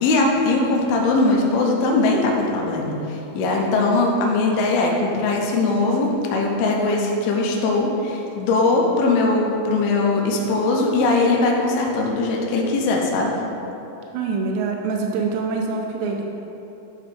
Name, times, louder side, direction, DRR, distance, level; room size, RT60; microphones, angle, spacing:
voice 1, 0.0-13.3, left 3 dB, 75° left, -1 dB, 2.4 m, -20 dB
voice 2, 14.1-16.4, right 4 dB, 85° right, 1 dB, 2.5 m, -25 dB
10.0 x 3.9 x 4.8 m, 3.0 s
omnidirectional pair, 5.4 m